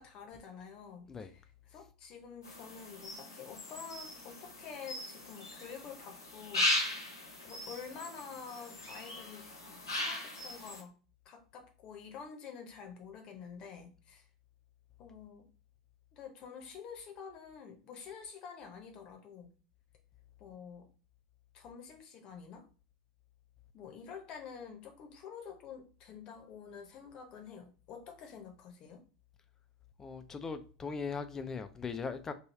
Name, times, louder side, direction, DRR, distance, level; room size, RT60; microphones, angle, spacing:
voice 1, 0.0-7.1 7.4-11.0 11.2-14.3 15.0-15.5 16.1-19.5 20.4-20.9 21.5-22.7 23.7-29.0, left 6 dB, 40° left, 0.8 m, -48 dB
sound 1, 2.4-10.8, left 1 dB, 80° left, 1.0 m, -38 dB
voice 2, 30.0-32.3, left 5 dB, 20° left, 0.4 m, -39 dB
3.2 x 2.3 x 4.1 m
figure-of-eight pair, 80°, 2 cm